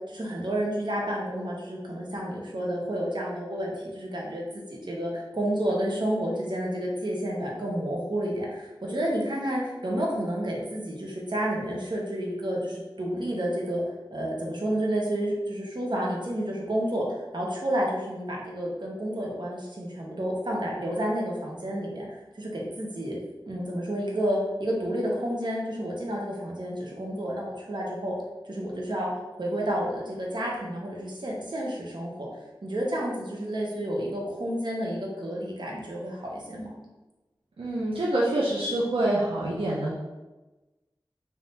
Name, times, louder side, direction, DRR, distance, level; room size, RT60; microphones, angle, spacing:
voice 1, 0.1-4.4 4.7-13.8 14.1-23.2 23.5-28.1 28.5-29.1 29.4-32.3 32.6-36.7, equal, 55° right, -3 dB, 1.0 m, -30 dB
voice 2, 37.6-39.9, right 1 dB, 80° right, -6 dB, 0.7 m, -26 dB
3.6 x 2.7 x 4.1 m, 1.1 s
wide cardioid pair, 70°, 9 cm